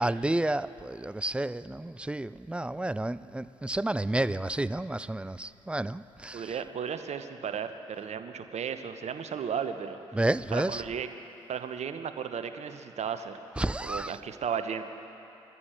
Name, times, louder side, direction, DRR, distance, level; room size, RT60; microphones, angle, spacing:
voice 1, 0.0-6.4 10.1-10.8 13.6-14.1, right 1 dB, 5° right, 17 dB, 0.4 m, -30 dB
voice 2, 6.3-10.2 10.5-11.1 11.5-13.3 13.8-14.8, right 7 dB, 45° right, 9 dB, 1.0 m, -34 dB
22.0 x 14.5 x 4.5 m, 2.9 s
figure-of-eight pair, 40°, 15 cm